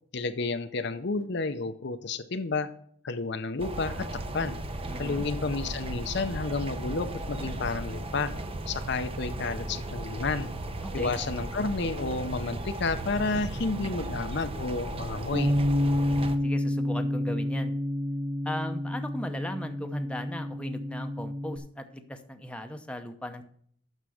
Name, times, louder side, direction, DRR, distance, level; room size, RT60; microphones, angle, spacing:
voice 1, 0.1-2.7 3.0-4.6 5.0-8.3 8.7-10.5 10.9-15.5, left 3 dB, 55° left, 10 dB, 0.7 m, -31 dB
sound 1, 3.6-16.4, right 1 dB, 30° right, 0.8 m, -36 dB
voice 2, 4.9-5.2 10.8-11.1 16.1-17.7 18.4-23.4, left 1 dB, 5° left, 6 dB, 0.7 m, -37 dB
Bass guitar, 15.3-21.6, left 1 dB, 50° right, 1.7 m, -29 dB
9.2 x 6.6 x 6.4 m, 0.62 s
head